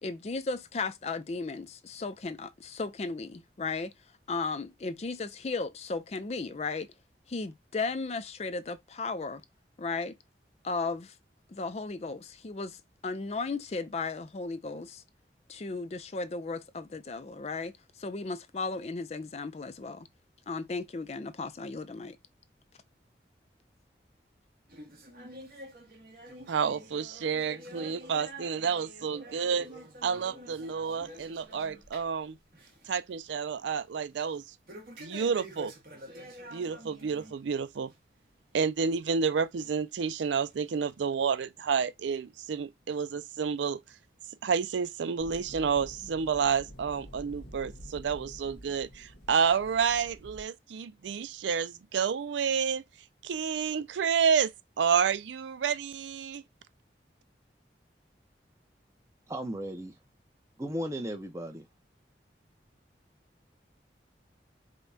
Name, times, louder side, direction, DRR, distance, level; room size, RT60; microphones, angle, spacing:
voice 1, 0.0-3.9 4.3-6.9 7.3-9.4 9.8-10.2 10.6-11.1 11.5-12.8 13.0-15.0 15.5-20.1 20.5-22.2, left 3 dB, 35° left, 0.4 m, -35 dB
sound 1, 24.7-32.2 32.5-32.9 33.2-33.3 34.7-37.3 37.7-37.9 38.6-38.7 39.6-39.7 40.5-40.6, equal, 55° right, 1.4 m, -48 dB
voice 2, 26.5-29.7 30.0-32.4 32.9-34.4 35.0-35.7 36.5-37.9 38.5-43.8 44.4-52.8 53.2-56.4, right 6 dB, 90° right, 0.4 m, -30 dB
sound 2, 45.2-50.4, equal, 85° left, 1.2 m, -48 dB
voice 3, 59.3-59.9 60.6-61.7, equal, 15° right, 0.7 m, -35 dB
5.1 x 2.3 x 2.7 m
head